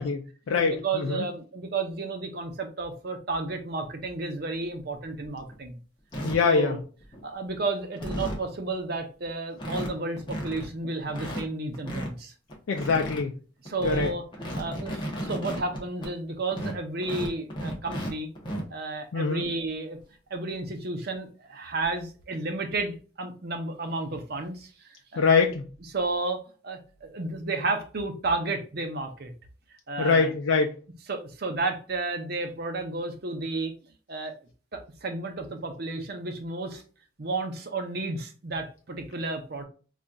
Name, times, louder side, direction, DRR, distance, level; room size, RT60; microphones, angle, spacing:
voice 1, 0.0-1.3 6.2-6.8 12.7-13.3 13.8-14.1 19.1-19.5 25.2-25.6 30.0-30.8, left 4 dB, 75° left, 2 dB, 0.4 m, -24 dB
voice 2, 0.5-5.8 6.4-6.8 7.2-12.3 12.9-13.0 13.6-14.2 14.6-18.3 18.7-20.0 20.3-25.2 25.9-29.3 29.9-30.3 31.1-33.7 34.1-34.3 34.7-36.8 37.2-39.6, right 3 dB, 50° right, 5 dB, 0.6 m, -32 dB
sound 1, 4.7-4.8 5.2-5.5 6.1-6.3 7.0-7.4 7.7-7.8 8.0-8.4 9.0-9.1 9.3-9.4 9.6-9.9 10.2-10.7 11.1-12.1 12.5-13.2 13.7-16.1 16.5-18.1 18.4-18.6 20.0-20.1 20.5-20.6 21.8-22.0, equal, 25° left, 0.7 m, -34 dB
4.0 x 2.4 x 2.3 m, 0.37 s
head